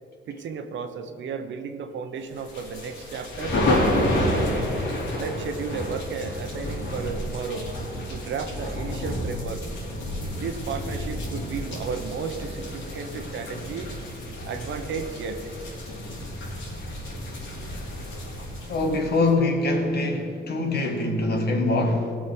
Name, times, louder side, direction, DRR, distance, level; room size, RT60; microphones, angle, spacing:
voice 1, 0.3-3.6 4.0-4.7 5.2-7.7 8.1-9.6 10.3-13.9 14.4-15.4, right 5 dB, 70° right, 7 dB, 1.1 m, -33 dB
sound 1, 2.4-19.3, left 1 dB, 75° left, 3.3 m, -30 dB
voice 2, 18.7-22.2, left 2 dB, 55° left, 3 dB, 2.0 m, -24 dB
17.5 x 6.3 x 6.0 m, 2.6 s
cardioid pair, 90°, 20 cm